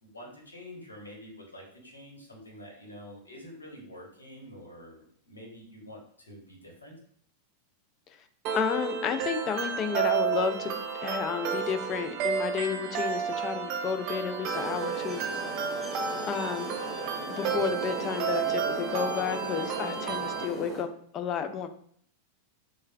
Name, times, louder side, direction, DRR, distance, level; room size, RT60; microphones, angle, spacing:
voice 1, 0.0-6.9 17.5-17.7, left 1 dB, 75° left, 0 dB, 1.1 m, -47 dB
sound 1, 8.4-20.4, right 7 dB, 40° right, 0.5 m, -32 dB
voice 2, 8.5-15.2 16.3-16.8 17.3-21.7, left 7 dB, 30° left, 9 dB, 0.4 m, -32 dB
sound 2, 14.5-20.8, right 1 dB, ahead, 1.3 m, -38 dB
6.2 x 2.2 x 2.3 m, 0.62 s
figure-of-eight pair, 90°, 0 cm